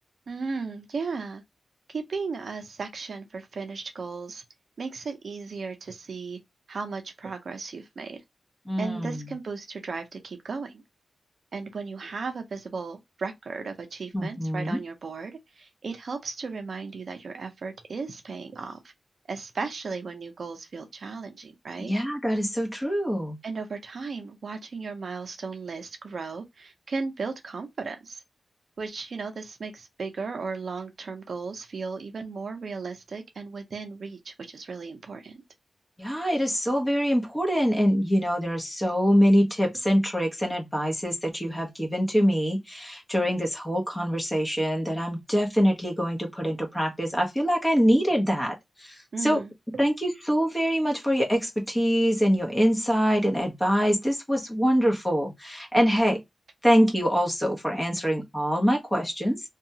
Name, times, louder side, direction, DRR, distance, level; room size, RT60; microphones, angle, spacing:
voice 1, 0.3-1.4 1.9-4.4 4.8-6.4 6.7-8.2 8.8-10.8 11.5-18.8 19.3-21.9 23.4-28.2 28.8-35.4 49.1-49.5, right 4 dB, 55° right, 0.5 m, -35 dB
voice 2, 8.7-9.3 14.1-14.8 21.8-23.4 36.0-49.4 49.8-56.2 56.6-59.4, equal, 10° left, 0.8 m, -24 dB
2.8 x 2.3 x 2.7 m
wide cardioid pair, 165°, 0 cm